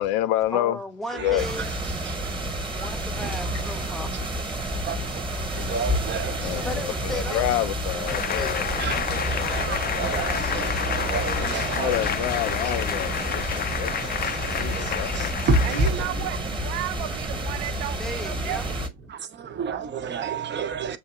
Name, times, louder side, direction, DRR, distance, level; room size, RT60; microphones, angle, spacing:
voice 1, 0.0-0.8 1.1-1.4 6.4-8.7 11.8-15.3, left 14 dB, 70° left, 0.6 m, -28 dB
voice 2, 0.5-1.7 2.8-4.2 6.6-7.5 7.9-8.6 18.0-18.7, left 1 dB, ahead, 0.8 m, -35 dB
voice 3, 1.1-1.7 2.1-2.2 3.2-3.6 4.1-4.2 4.9-5.0 5.6-6.8 7.3-7.4 8.8-12.1 14.7-14.9 15.1-16.3 19.4-21.0, right 3 dB, 35° right, 0.9 m, -29 dB
sound 1, 1.4-18.9, right 1 dB, 15° right, 1.3 m, -30 dB
sound 2, 8.1-15.9, left 8 dB, 30° left, 0.6 m, -30 dB
voice 4, 15.6-18.9, right 13 dB, 70° right, 0.6 m, -33 dB
7.2 x 2.8 x 2.4 m
hypercardioid pair, 80°, 31 cm